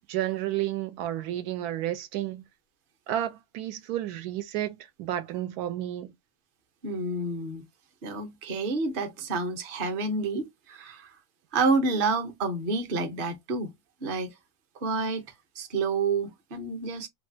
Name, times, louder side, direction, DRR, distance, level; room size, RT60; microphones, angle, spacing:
voice 1, 0.1-2.5 3.1-6.1, right 12 dB, 85° right, 1.1 m, -31 dB
voice 2, 6.8-7.6 8.0-11.2 11.5-13.7 14.0-14.3 14.8-15.2 15.6-17.1, right 3 dB, 45° right, 0.7 m, -29 dB
3.2 x 2.3 x 2.6 m
omnidirectional pair, 1.6 m